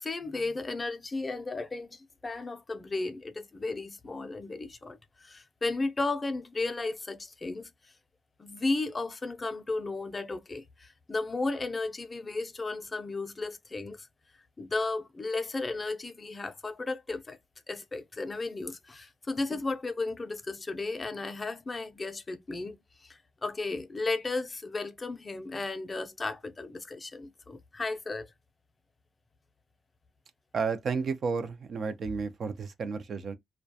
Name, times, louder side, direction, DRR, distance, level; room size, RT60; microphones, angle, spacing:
voice 1, 0.0-7.9 8.4-14.1 14.6-17.4 17.7-28.3, left 3 dB, 25° left, 0.4 m, -34 dB
voice 2, 30.5-33.4, right 5 dB, 50° right, 0.4 m, -32 dB
2.3 x 2.2 x 2.6 m
cardioid pair, 90°, 0 cm